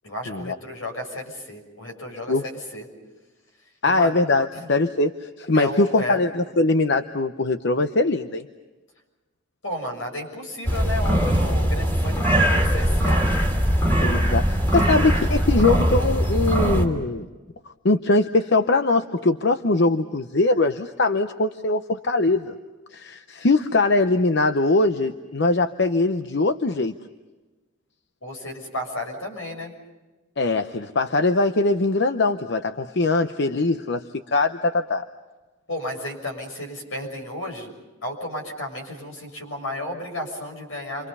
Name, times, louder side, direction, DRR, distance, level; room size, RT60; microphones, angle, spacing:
voice 1, 0.0-2.9 3.8-4.2 4.5-4.7 5.5-6.2 9.6-13.3 28.2-29.7 35.7-37.7 38.0-41.1, left 1 dB, 80° left, 2 dB, 6.7 m, -33 dB
voice 2, 3.8-8.5 14.0-17.3 17.8-22.5 22.9-26.9 30.4-35.0, left 2 dB, 60° left, 8 dB, 0.8 m, -22 dB
sound 1, 10.7-16.9, equal, 10° left, 3.0 m, -21 dB
30.0 x 25.5 x 5.5 m, 1.2 s
head